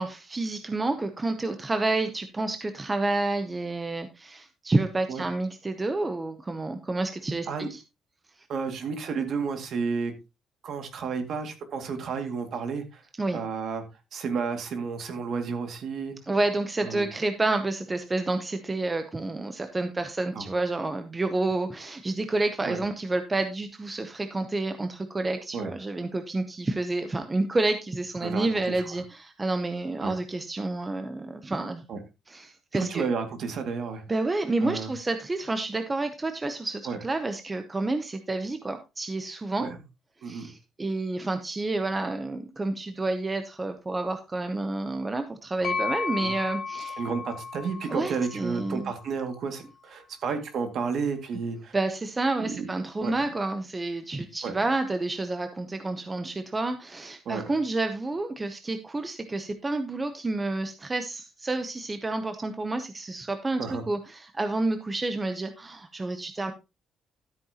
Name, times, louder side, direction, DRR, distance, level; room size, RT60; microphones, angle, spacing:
voice 1, 0.0-7.8 13.2-13.4 16.3-31.8 32.3-33.1 34.1-39.7 40.2-47.0 47.9-48.9 51.7-66.5, right 2 dB, 15° right, 8 dB, 0.7 m, -29 dB
voice 2, 8.5-10.1 10.6-13.0 13.3-13.8 14.1-16.2 16.8-17.1 20.4-20.5 22.7-22.8 25.5-25.7 28.2-28.8 30.0-30.1 31.9-32.0 32.7-34.0 34.6-34.9 36.9-37.0 39.6-39.8 40.2-40.5 46.2-46.3 47.0-51.8 52.4-52.7 53.0-53.1 54.4-54.5 57.3-57.4 63.6-63.8, right 5 dB, 45° right, 6 dB, 2.1 m, -31 dB
sound 1, 45.6-49.4, left 5 dB, 45° left, 2.6 m, -34 dB
13.0 x 8.6 x 2.8 m, 0.26 s
cardioid pair, 180°, 0 cm